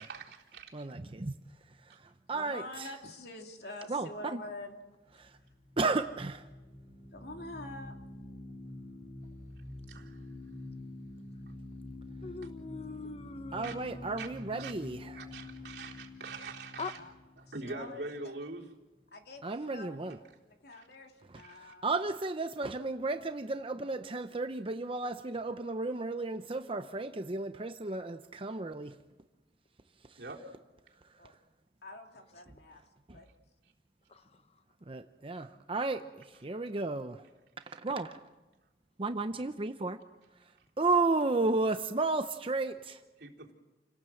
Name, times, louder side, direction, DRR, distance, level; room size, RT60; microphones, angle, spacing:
voice 1, 0.0-0.9 1.9-2.0 9.9-10.2 12.4-12.5 13.6-13.8 14.2-14.3 14.6-14.7 15.1-17.0 17.4-18.7 20.7-20.9 21.3-21.7 30.2-30.5 37.6-37.8 43.2-43.5, right 3 dB, 65° right, -2 dB, 3.9 m, -44 dB
voice 2, 0.7-1.4 1.9-2.9 3.9-4.4 5.2-5.3 5.8-6.5 13.5-15.3 19.4-20.2 21.3-29.0 30.1-30.2 33.1-33.2 34.9-37.2 37.8-38.2 39.0-40.0 40.8-43.0, right 3 dB, 30° right, 8 dB, 0.7 m, -33 dB
voice 3, 2.3-4.8 7.1-7.9 16.9-17.1 17.6-18.3 19.1-21.9 31.2-31.3 31.8-32.8 33.1-33.3, left 2 dB, 65° left, 3 dB, 3.0 m, -46 dB
sound 1, 5.2-18.4, left 2 dB, 15° left, 3.2 m, -47 dB
voice 4, 12.2-14.3 16.8-16.9 34.1-34.2, left 3 dB, 35° left, 11 dB, 0.8 m, -42 dB
29.5 x 18.0 x 7.8 m, 1.2 s
head